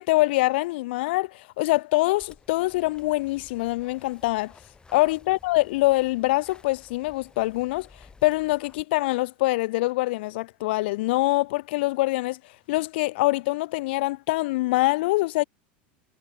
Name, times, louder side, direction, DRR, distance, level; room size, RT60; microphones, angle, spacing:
voice 1, 0.0-4.5 4.9-7.9 8.2-12.4 12.7-15.4, left 20 dB, 70° left, 0.4 m, -24 dB
sound 1, 2.2-8.8, left 4 dB, 15° left, 1.8 m, -54 dB
supercardioid pair, 115°, 6 cm